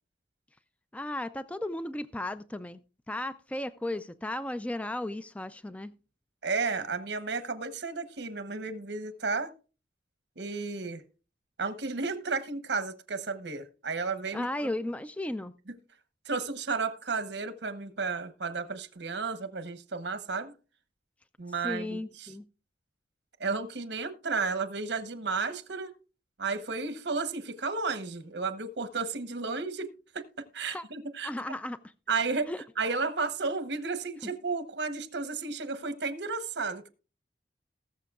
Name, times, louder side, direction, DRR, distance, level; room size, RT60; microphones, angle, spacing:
voice 1, 0.9-2.8 3.1-5.9 14.3-15.5 21.6-22.4 30.6-30.8 31.2-31.8 32.5-32.6 34.2-34.3, left 1 dB, 10° left, 0.4 m, -35 dB
voice 2, 6.4-9.5 10.4-11.0 11.6-14.7 16.2-20.5 21.4-22.3 23.4-25.9 26.4-30.3 30.5-31.3 32.1-32.5 32.8-36.9, right 4 dB, 75° right, 1.0 m, -33 dB
19.0 x 6.7 x 2.4 m
head